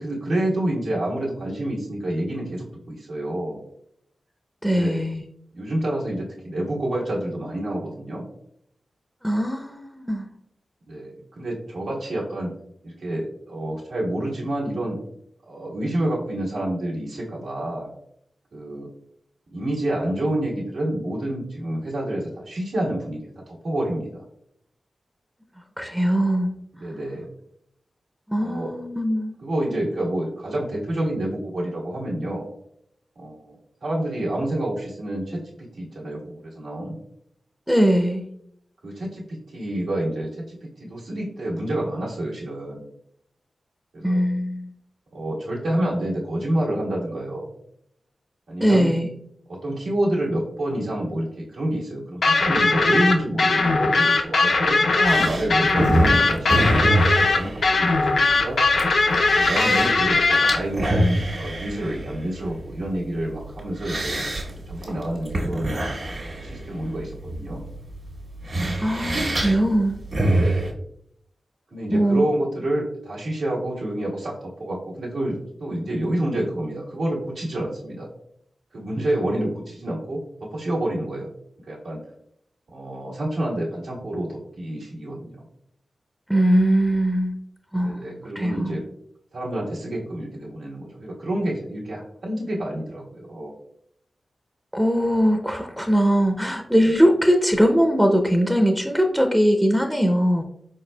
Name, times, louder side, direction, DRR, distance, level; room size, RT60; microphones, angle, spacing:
voice 1, 0.0-3.6 4.7-5.0 5.5-8.2 10.9-12.5 12.8-15.0 15.5-17.9 18.5-18.9 19.5-24.2 26.8-27.3 28.4-28.7 29.4-32.5 33.2-33.6 33.8-36.9 38.8-42.8 43.9-44.2 45.1-47.5 48.5-48.9 49.5-56.5 56.8-58.6 59.3-64.2 64.7-65.8 66.4-67.6 70.2-70.7 71.7-78.1 78.7-81.3 81.7-82.0 82.7-85.4 87.8-88.8 89.3-93.5, right 1 dB, 90° right, -5 dB, 1.4 m, -28 dB
voice 2, 4.6-5.2 9.2-10.3 25.8-26.5 28.3-29.3 37.7-38.2 44.0-44.7 48.6-49.1 68.8-70.4 71.9-72.3 86.3-87.3 87.7-88.1 88.4-88.8 94.7-100.4, equal, 5° right, 3 dB, 0.5 m, -21 dB
sound 1, 52.2-60.6, left 3 dB, 75° left, 0.5 m, -19 dB
sound 2, 55.0-70.7, right 1 dB, 55° right, 1.4 m, -26 dB
4.4 x 4.1 x 2.2 m, 0.72 s
cardioid pair, 65°, 0 cm